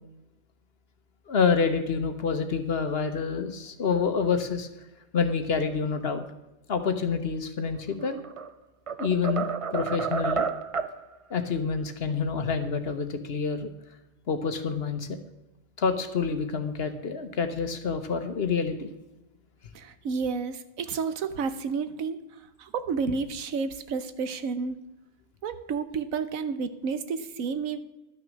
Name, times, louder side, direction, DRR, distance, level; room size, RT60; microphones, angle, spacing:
voice 1, 1.3-4.7 5.1-6.2 6.7-8.2 9.0-9.5 9.7-10.5 11.3-13.7 14.3-15.2 15.8-18.9, left 5 dB, 50° left, 8 dB, 1.1 m, -27 dB
sound 1, 8.0-8.5 8.9-11.0, right 6 dB, 50° right, 0.4 m, -30 dB
voice 2, 19.7-22.2 22.6-24.8 25.4-27.8, right 5 dB, 85° right, 11 dB, 1.2 m, -31 dB
11.5 x 6.2 x 6.3 m, 1.0 s
omnidirectional pair, 1.4 m